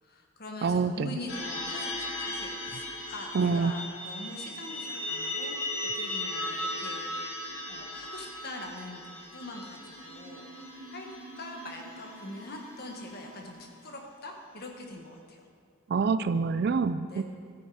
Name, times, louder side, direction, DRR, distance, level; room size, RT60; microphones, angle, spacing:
voice 1, 0.0-15.5 17.1-17.2, left 2 dB, 45° left, 2 dB, 1.4 m, -43 dB
voice 2, 0.6-1.1 3.3-3.7 15.9-17.2, right 5 dB, 50° right, 14 dB, 0.3 m, -26 dB
sound 1, 1.3-13.8, left 1 dB, 70° left, 3.0 m, -37 dB
13.5 x 9.1 x 4.8 m, 2.2 s
head